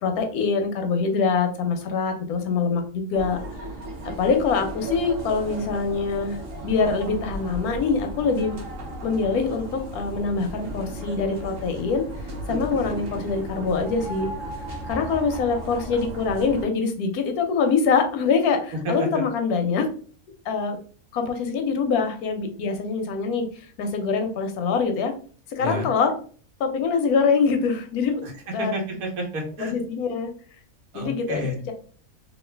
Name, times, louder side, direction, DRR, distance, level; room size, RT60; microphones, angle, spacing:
voice 1, 0.0-3.4 4.2-6.4 6.6-8.6 9.0-12.0 12.5-14.3 14.9-19.9 20.5-20.8 21.1-23.5 23.8-25.1 25.5-26.1 26.6-28.2 28.5-28.7 29.6-30.3 30.9-31.7, left 5 dB, 85° left, 5 dB, 1.1 m, -24 dB
sound 1, 3.1-16.6, right 1 dB, 50° right, 0.9 m, -35 dB
voice 2, 18.8-19.2 25.6-25.9 28.2-29.7 30.9-31.6, equal, 75° right, 1 dB, 1.4 m, -30 dB
3.1 x 2.4 x 3.2 m, 0.43 s
omnidirectional pair, 1.5 m